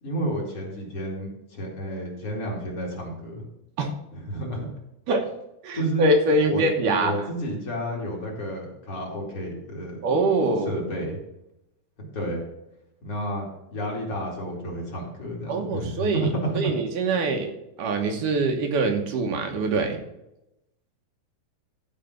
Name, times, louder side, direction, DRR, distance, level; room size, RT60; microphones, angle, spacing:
voice 1, 0.0-3.4 4.1-4.7 5.7-6.1 6.4-10.0 10.6-11.2 12.0-12.4 13.0-13.5 13.7-16.7, right 1 dB, 40° left, -2 dB, 3.3 m, -31 dB
voice 2, 5.6-7.2 10.0-10.8 15.5-17.5 17.8-20.0, right 2 dB, 70° right, 3 dB, 2.7 m, -24 dB
14.0 x 5.0 x 6.6 m, 0.87 s
omnidirectional pair, 4.0 m